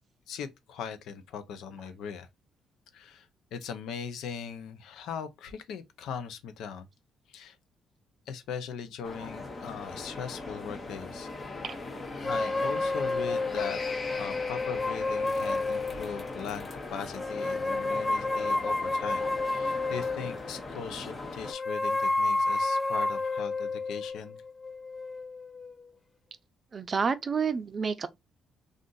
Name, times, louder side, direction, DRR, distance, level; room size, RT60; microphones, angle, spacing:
voice 1, 0.3-2.3 2.9-6.9 7.3-7.6 8.3-11.3 12.2-13.8 14.1-24.4, left 7 dB, 85° left, 0.6 m, -40 dB
sound 1, 9.0-21.5, left 3 dB, 35° left, 0.8 m, -40 dB
sound 2, 12.2-16.4 17.2-20.6 21.4-25.8, left 2 dB, 15° left, 0.3 m, -30 dB
voice 2, 26.7-28.1, right 5 dB, 40° right, 0.5 m, -29 dB
2.5 x 2.5 x 3.8 m
cardioid pair, 90°, 0 cm